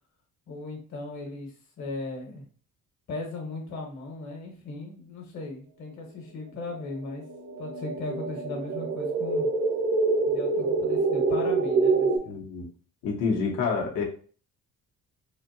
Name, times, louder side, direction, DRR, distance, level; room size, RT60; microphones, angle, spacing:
voice 1, 0.5-2.4 3.1-7.2 7.6-9.5 10.3-12.4, left 2 dB, 60° left, 1 dB, 1.5 m, -37 dB
sound 1, 7.0-12.2, right 3 dB, 70° right, 0.7 m, -26 dB
voice 2, 12.2-12.7 13.0-14.0, left 5 dB, 80° left, -1 dB, 1.3 m, -28 dB
4.2 x 2.7 x 2.8 m, 0.42 s
cardioid pair, 175°, 31 cm